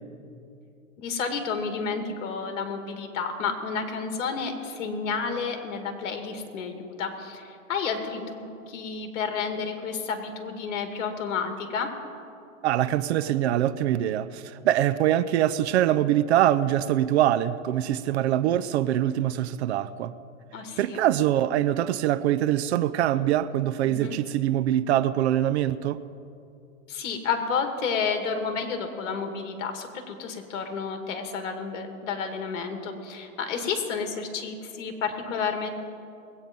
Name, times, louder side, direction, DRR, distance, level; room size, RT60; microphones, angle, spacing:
voice 1, 1.0-11.9 20.5-21.0 23.8-24.2 26.9-35.7, left 5 dB, 65° left, 5 dB, 2.3 m, -31 dB
voice 2, 12.6-20.1 20.8-26.0, right 12 dB, 55° right, 14 dB, 0.6 m, -24 dB
21.5 x 9.0 x 5.4 m, 2.7 s
hypercardioid pair, 135°, 40 cm